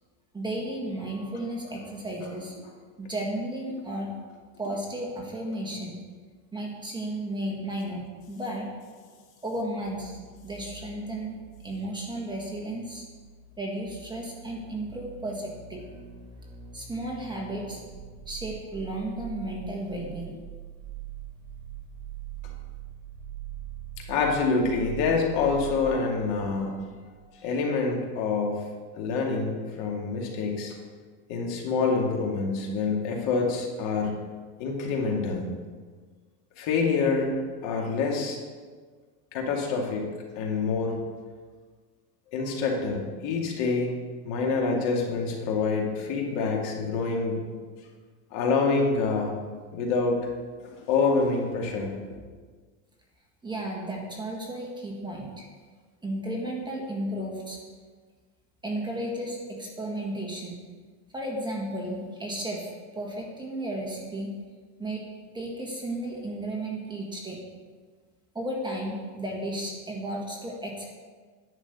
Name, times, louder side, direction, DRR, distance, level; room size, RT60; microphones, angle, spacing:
voice 1, 0.3-2.5 3.0-4.1 4.6-6.0 6.5-8.7 9.4-10.2 10.4-11.4 11.6-13.1 13.6-15.8 16.7-17.8 18.3-20.4 53.4-55.4 56.0-57.6 58.6-60.5 61.1-64.3 64.8-65.1 65.3-67.4 68.3-70.9, right 1 dB, 10° right, -2 dB, 1.7 m, -34 dB
sound 1, 9.8-27.4 27.6-27.7, right 9 dB, 65° right, 2.7 m, -43 dB
voice 2, 24.1-26.8 27.3-28.6 28.9-30.8 31.3-34.2 34.6-35.5 36.6-37.3 37.6-38.4 39.3-40.1 40.4-41.0 42.3-43.9 44.3-47.4 48.3-49.3 49.7-50.3 50.7-51.9, left 4 dB, 60° left, 0 dB, 2.5 m, -26 dB
10.5 x 6.3 x 8.2 m, 1.5 s
cardioid pair, 155°, 49 cm